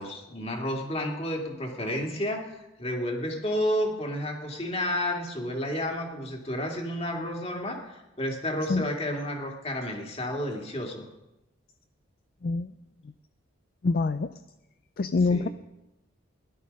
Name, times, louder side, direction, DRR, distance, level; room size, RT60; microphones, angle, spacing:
voice 1, 0.0-11.0 15.3-15.5, left 1 dB, 30° left, 1 dB, 2.3 m, -31 dB
voice 2, 13.8-14.3 15.0-15.5, left 3 dB, 50° left, 12 dB, 0.4 m, -25 dB
16.5 x 11.5 x 5.4 m, 0.96 s
head